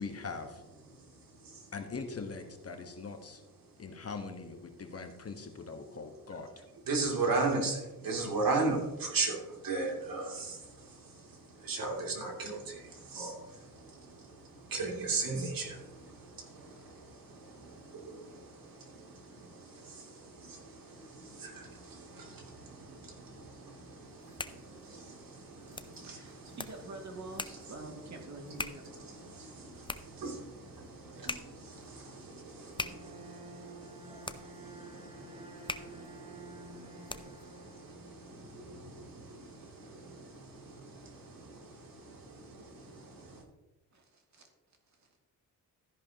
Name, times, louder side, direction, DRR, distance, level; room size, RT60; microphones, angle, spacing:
voice 1, 0.0-0.6 1.7-3.4 3.8-6.6, left 4 dB, 40° left, 6 dB, 1.3 m, -42 dB
voice 2, 0.8-1.7 2.7-4.1 4.7-43.4, right 3 dB, 60° right, 0 dB, 3.0 m, -39 dB
sound 1, 24.1-37.5, left 3 dB, 15° left, 0.5 m, -45 dB
voice 3, 26.0-29.0 43.9-44.5 44.9-45.2, right 2 dB, 45° right, 2 dB, 2.5 m, -47 dB
Bowed string instrument, 32.6-38.6, right 2 dB, 15° right, 3.3 m, -51 dB
13.5 x 10.5 x 3.0 m, 1.1 s
cardioid pair, 100°, 38 cm